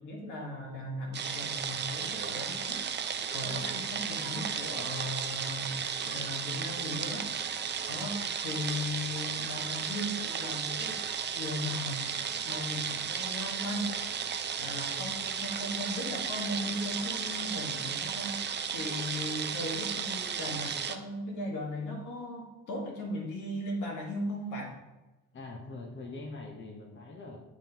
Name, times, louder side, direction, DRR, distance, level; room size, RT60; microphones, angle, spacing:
voice 1, 0.0-2.8 3.3-7.3 7.9-11.0 11.3-12.1 12.4-13.9 14.5-18.4 18.7-24.8, left 1 dB, 80° left, -1 dB, 1.7 m, -37 dB
sound 1, 1.1-21.0, right 7 dB, 35° right, 0.5 m, -34 dB
voice 2, 25.3-27.4, left 3 dB, 40° left, 0 dB, 1.0 m, -43 dB
9.8 x 3.7 x 2.9 m, 1.1 s
cardioid pair, 90°, 30 cm